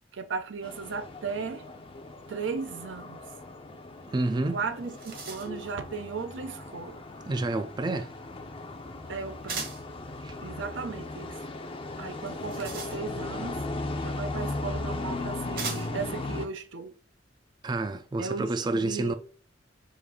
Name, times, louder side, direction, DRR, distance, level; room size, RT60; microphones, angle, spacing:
voice 1, 0.1-1.7 2.3-3.2 4.5-7.0 9.1-9.7 10.4-11.4 12.0-13.6 14.0-16.9 18.2-19.2, right 5 dB, 80° right, 0.5 m, -36 dB
sound 1, 0.6-16.5, left 2 dB, 30° left, 0.5 m, -37 dB
voice 2, 4.1-4.6 7.3-8.1 10.2-10.4 17.6-19.1, right 2 dB, 25° right, 0.3 m, -29 dB
sound 2, 4.7-5.7 9.5-9.9 12.2-13.4 14.5-14.6 15.6-16.1, right 4 dB, 55° right, 1.1 m, -38 dB
4.8 x 2.6 x 3.6 m
head